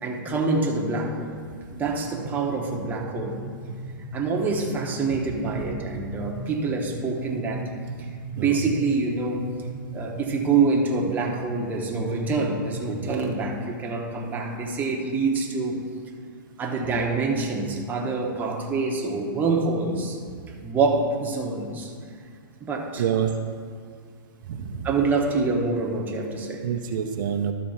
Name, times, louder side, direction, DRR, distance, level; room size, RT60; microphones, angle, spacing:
voice 1, 0.0-1.3 1.7-3.4 4.1-7.7 8.0-8.1 8.4-9.5 9.9-15.8 16.6-20.2 20.6-21.9 22.6-23.0 24.8-26.6, right 4 dB, 15° right, -1 dB, 1.1 m, -26 dB
sound 1, 2.0-13.5, right 2 dB, 5° left, 1.6 m, -37 dB
voice 2, 23.0-23.3 24.5-24.9 26.6-27.5, right 9 dB, 65° right, 4 dB, 0.7 m, -27 dB
12.0 x 4.2 x 5.7 m, 2.1 s
hypercardioid pair, 140°, 12 cm